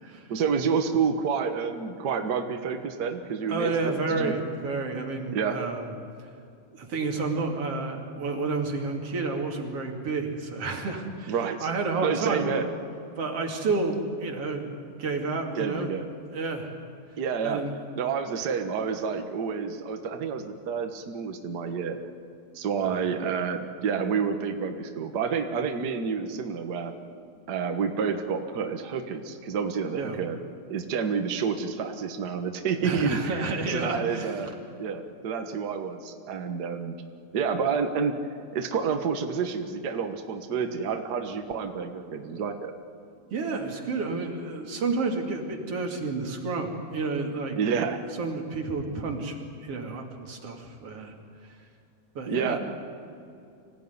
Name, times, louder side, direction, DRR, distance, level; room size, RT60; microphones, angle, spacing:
voice 1, 0.3-4.3 5.3-5.6 11.3-11.7 12.0-12.7 15.5-16.0 17.2-17.6 18.0-22.0 22.5-26.9 27.5-30.4 30.7-34.5 34.8-37.0 37.3-38.2 38.5-42.7 47.5-48.0 52.2-52.6, right 6 dB, 80° right, 5 dB, 0.9 m, -29 dB
voice 2, 3.5-5.8 6.7-12.5 13.2-14.7 15.0-15.9 16.3-16.7 17.4-17.7 22.8-23.0 29.9-30.2 32.8-34.5 43.3-47.6 48.2-51.1 52.1-52.6, right 3 dB, 45° right, 1 dB, 3.3 m, -30 dB
25.0 x 16.5 x 9.6 m, 2.6 s
omnidirectional pair, 4.0 m